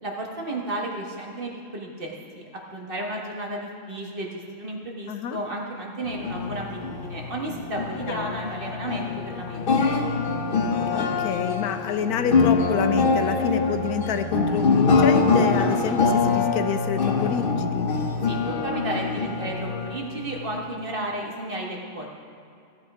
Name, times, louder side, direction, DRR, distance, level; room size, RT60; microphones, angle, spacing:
voice 1, 0.0-9.9 18.2-22.1, right 1 dB, 35° right, -1 dB, 1.6 m, -33 dB
voice 2, 5.1-5.4 8.1-8.4 10.9-17.9, left 8 dB, 80° left, 9 dB, 1.1 m, -28 dB
sound 1, 6.0-20.7, left 4 dB, 45° left, 0.8 m, -24 dB
15.0 x 8.0 x 4.8 m, 2.5 s
omnidirectional pair, 1.6 m